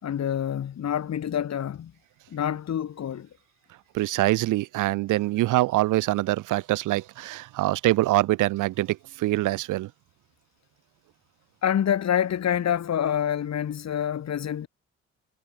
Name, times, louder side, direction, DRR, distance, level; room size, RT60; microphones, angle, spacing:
voice 1, 0.0-1.9 2.3-3.3 11.6-14.7, left 9 dB, 60° left, 6.1 m, -27 dB
voice 2, 3.9-9.9, right 17 dB, 85° right, 1.2 m, -24 dB
cardioid pair, 90°, 30 cm